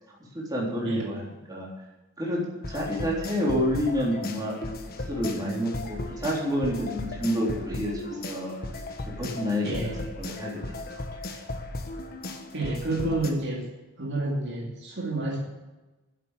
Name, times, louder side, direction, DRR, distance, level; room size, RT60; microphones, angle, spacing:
voice 1, 0.3-1.7 2.2-4.6 5.1-8.5 9.2-10.6, equal, 20° right, -4 dB, 3.7 m, -29 dB
sound 1, 2.6-13.3, left 2 dB, 45° left, 1.4 m, -36 dB
voice 2, 9.6-10.0 12.5-13.7 14.0-15.4, right 2 dB, 55° right, -3 dB, 2.6 m, -29 dB
10.5 x 8.0 x 8.4 m, 1.1 s
head